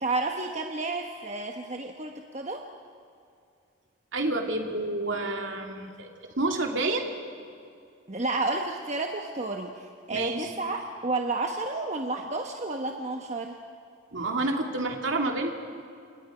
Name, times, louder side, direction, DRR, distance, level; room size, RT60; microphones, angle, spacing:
voice 1, 0.0-2.6 8.1-13.6, right 3 dB, 35° right, 3 dB, 1.2 m, -31 dB
voice 2, 4.1-7.1 10.1-10.5 14.1-15.5, right 2 dB, 60° right, 3 dB, 2.7 m, -29 dB
29.0 x 27.5 x 5.1 m, 2.4 s
head